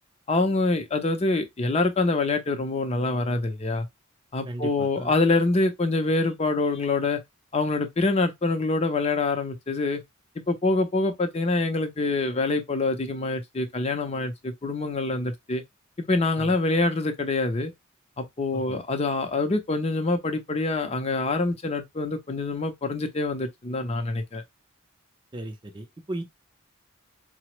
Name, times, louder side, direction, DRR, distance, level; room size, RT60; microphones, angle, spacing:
voice 1, 0.3-3.9 4.3-7.2 7.5-10.0 10.5-15.6 16.1-17.7 18.2-24.4, left 3 dB, 30° left, 0.5 m, -25 dB
voice 2, 4.4-5.1 16.4-16.6 18.5-18.8 25.3-26.2, right 1 dB, 20° right, 0.5 m, -36 dB
4.1 x 2.0 x 2.9 m
head